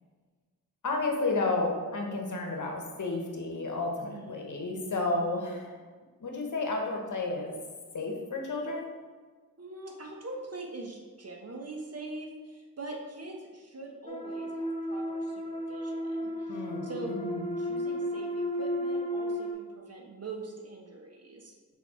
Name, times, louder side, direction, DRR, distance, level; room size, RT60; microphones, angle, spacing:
voice 1, 0.8-5.8 6.2-7.5 7.9-8.9 16.5-17.4, left 3 dB, 55° left, 1 dB, 1.2 m, -32 dB
voice 2, 4.1-4.6 5.0-5.5 9.6-17.2 17.6-21.5, right 2 dB, 40° right, 1 dB, 1.2 m, -43 dB
sound 1, 14.1-19.5, equal, 15° left, 0.8 m, -33 dB
5.5 x 4.1 x 4.3 m, 1.4 s
cardioid pair, 45°, 36 cm